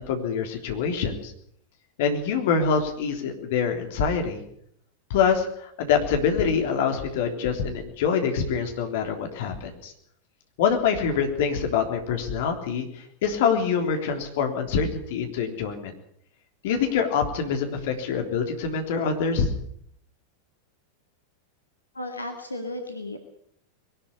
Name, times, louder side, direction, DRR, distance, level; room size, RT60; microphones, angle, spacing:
voice 1, 0.0-1.3 2.0-4.4 5.1-9.9 10.6-15.9 16.6-19.5, left 6 dB, 55° left, 4 dB, 3.6 m, -25 dB
voice 2, 21.9-23.2, left 1 dB, 80° left, 4 dB, 2.1 m, -34 dB
21.5 x 12.5 x 9.9 m, 0.69 s
figure-of-eight pair, 90°, 0 cm